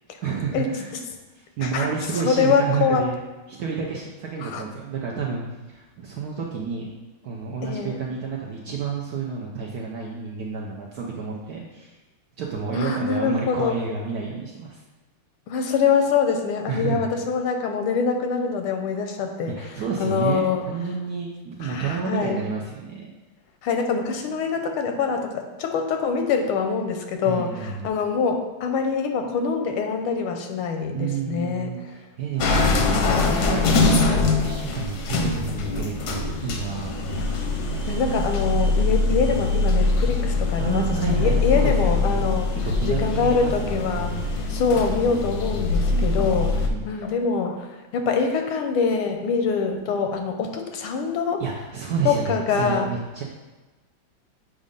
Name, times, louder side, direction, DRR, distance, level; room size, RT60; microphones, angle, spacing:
voice 1, 0.2-0.9 1.3-3.2 3.5-5.4 5.7-6.9 7.2-11.9 12.4-14.8 16.7-17.1 19.5-23.2 27.2-27.9 30.9-32.7 33.1-36.9 40.6-44.3 45.9-47.1 51.4-53.2, right 5 dB, 70° right, -2 dB, 0.9 m, -30 dB
voice 2, 2.2-3.1 4.4-4.6 7.6-8.0 12.7-13.8 15.5-19.5 20.0-20.6 21.6-22.4 23.6-31.8 32.8-33.3 35.4-35.5 37.9-42.5 42.8-46.6 46.8-47.7 47.9-51.4 52.0-52.9, left 5 dB, 85° left, 5 dB, 1.6 m, -24 dB
sound 1, 32.4-46.7, left 3 dB, 65° left, 1.0 m, -23 dB
7.3 x 2.5 x 5.1 m, 1.2 s
omnidirectional pair, 2.3 m